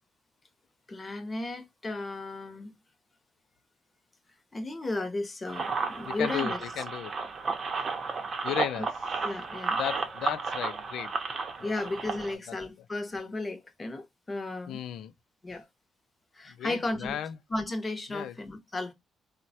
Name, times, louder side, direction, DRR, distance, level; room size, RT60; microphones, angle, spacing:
voice 1, 0.9-2.7 4.5-6.6 9.2-9.8 11.6-14.8 15.4-15.7 16.3-17.2 17.5-18.9, left 2 dB, 25° left, 0.8 m, -34 dB
sound 1, 5.5-12.3, right 4 dB, 45° right, 0.7 m, -33 dB
voice 2, 6.0-7.1 8.4-8.9 9.7-11.1 11.6-11.9 14.7-15.1 16.6-17.4 18.1-18.3, left 10 dB, 80° left, 0.4 m, -35 dB
3.1 x 2.1 x 2.7 m
cardioid pair, 90°, 0 cm